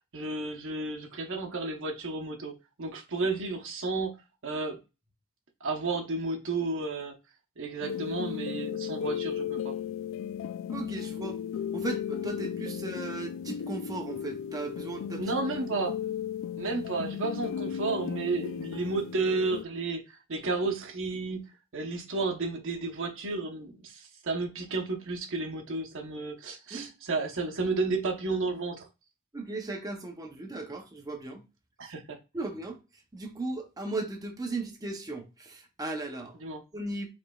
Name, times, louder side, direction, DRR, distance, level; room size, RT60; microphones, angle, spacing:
voice 1, 0.1-4.1 4.4-4.8 5.6-7.2 7.6-9.8 15.2-15.9 16.6-21.4 21.7-28.9 31.8-32.2 36.4-36.6, right 3 dB, 60° right, 0.8 m, -32 dB
sound 1, 7.8-19.6, left 8 dB, 60° left, 0.3 m, -35 dB
voice 2, 10.7-11.4 11.7-15.3 26.7-26.9 29.3-31.4 32.3-32.8 33.1-36.3 36.7-37.1, right 2 dB, 15° right, 0.6 m, -36 dB
5.0 x 3.1 x 2.3 m
head